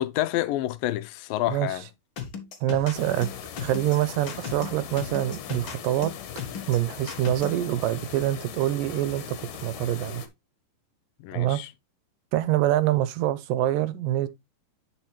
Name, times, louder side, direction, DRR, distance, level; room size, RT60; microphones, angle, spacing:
voice 1, 0.0-1.9 11.2-11.7, left 14 dB, 90° left, 2.5 m, -28 dB
sound 1, 2.2-7.6, left 7 dB, 50° left, 1.9 m, -36 dB
voice 2, 2.6-3.3 3.6-6.1 6.7-10.2 11.3-11.6 12.3-14.3, right 14 dB, 85° right, 2.5 m, -25 dB
sound 2, 2.9-10.3, left 9 dB, 75° left, 2.7 m, -40 dB
10.5 x 5.8 x 3.2 m
omnidirectional pair, 3.9 m